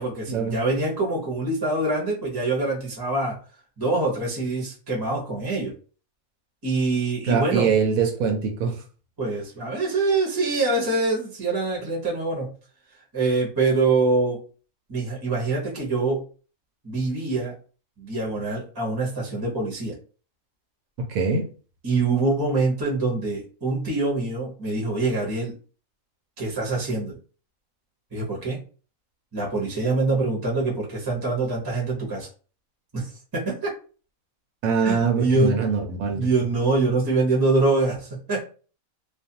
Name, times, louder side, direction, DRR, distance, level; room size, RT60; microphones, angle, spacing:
voice 1, 0.0-3.4 3.8-5.7 6.6-7.7 9.2-12.5 13.1-14.4 14.9-16.2 16.8-17.5 18.0-20.0 21.8-25.5 26.4-27.1 28.1-28.6 29.3-32.3 32.9-33.7 34.8-35.6 36.1-38.4, right 3 dB, 20° right, -3 dB, 0.7 m, -24 dB
voice 2, 7.3-8.8 21.0-21.4 34.6-36.3, right 5 dB, 80° right, 3 dB, 1.0 m, -23 dB
2.4 x 2.2 x 2.7 m, 0.37 s
omnidirectional pair, 1.4 m